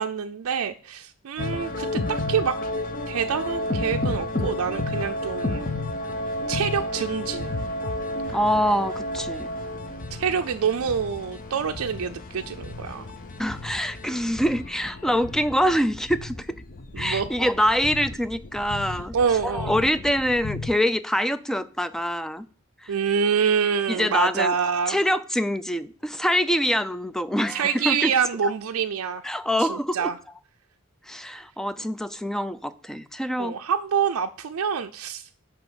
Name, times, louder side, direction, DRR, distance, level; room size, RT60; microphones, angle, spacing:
voice 1, 0.0-2.5 3.1-5.7 6.5-7.6 10.2-13.1 16.9-17.3 19.1-19.7 22.9-25.0 27.5-29.2 29.6-30.2 33.4-35.4, right 7 dB, 85° right, 5 dB, 0.4 m, -26 dB
sound 1, 1.4-20.7, left 1 dB, 40° left, 0.7 m, -32 dB
voice 2, 8.3-9.5 13.4-16.6 17.0-19.1 19.4-22.5 22.8-22.9 23.9-24.6 24.9-28.1 28.4-28.5 29.2-30.1 31.1-33.6, equal, ahead, 12 dB, 0.4 m, -25 dB
10.5 x 3.5 x 6.1 m, 0.43 s
head